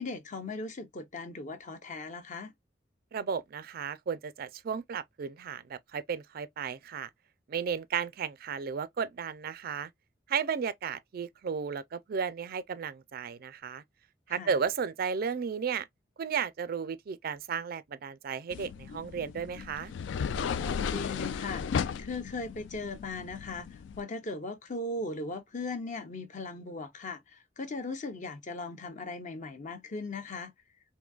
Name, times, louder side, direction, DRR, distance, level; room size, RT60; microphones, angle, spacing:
voice 1, 0.0-2.5 14.3-14.5 20.4-30.5, left 3 dB, 40° left, 0.7 m, -38 dB
voice 2, 3.1-7.1 7.5-9.9 10.3-13.8 14.3-15.8 16.2-19.9, right 6 dB, 55° right, 0.4 m, -34 dB
sound 1, 18.5-24.0, left 6 dB, 70° left, 0.3 m, -35 dB
3.8 x 2.6 x 2.2 m
head